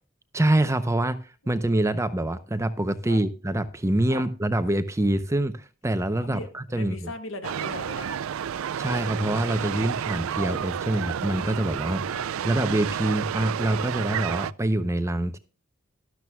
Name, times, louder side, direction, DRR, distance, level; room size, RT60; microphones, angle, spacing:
voice 1, 0.3-7.1 8.8-15.4, right 1 dB, 15° right, 0.6 m, -25 dB
voice 2, 6.2-8.2 12.1-12.2, left 2 dB, 70° left, 1.7 m, -38 dB
sound 1, 7.4-14.5, right 8 dB, 75° right, 0.4 m, -30 dB
12.5 x 12.5 x 2.3 m
head